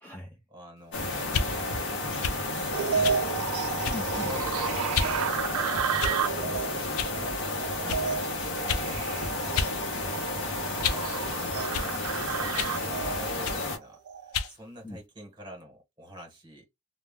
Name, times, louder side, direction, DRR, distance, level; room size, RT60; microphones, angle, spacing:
voice 1, 0.0-0.4 3.9-4.3 6.0-7.4 7.8-8.3 14.8-15.0, left 1 dB, 10° left, 0.4 m, -42 dB
voice 2, 0.5-1.3 2.4-4.8 10.2-16.7, equal, 20° right, 1.0 m, -47 dB
sound 1, 0.9-13.8, left 2 dB, 55° left, 0.7 m, -32 dB
sound 2, 1.3-1.5 2.2-2.4 3.0-3.2 3.8-4.1 4.9-5.2 6.0-6.4 7.0-7.2 7.9-8.0 8.7-8.9 9.6-9.8 10.1-11.1 11.7-11.9 12.6-12.8 13.4-13.6 14.3-14.5, left 6 dB, 75° left, 0.4 m, -30 dB
sound 3, 2.7-14.5, right 7 dB, 75° right, 0.3 m, -32 dB
2.3 x 2.0 x 3.4 m
head